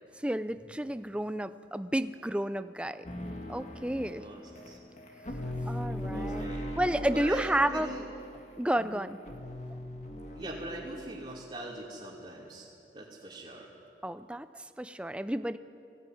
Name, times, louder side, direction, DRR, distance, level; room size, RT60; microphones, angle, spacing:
voice 1, 0.2-3.1 3.5-4.3 5.7-6.4 6.8-7.9 8.6-9.2 14.0-15.6, right 1 dB, 5° right, 12 dB, 0.5 m, -31 dB
sound 1, 3.0-11.3, equal, 40° left, 1.9 m, -39 dB
voice 2, 4.2-4.8 6.1-6.7 7.1-8.1 8.8-9.0 10.3-12.7 12.9-13.7, right 1 dB, 30° right, -6 dB, 2.8 m, -41 dB
22.0 x 16.5 x 9.4 m, 2.6 s
head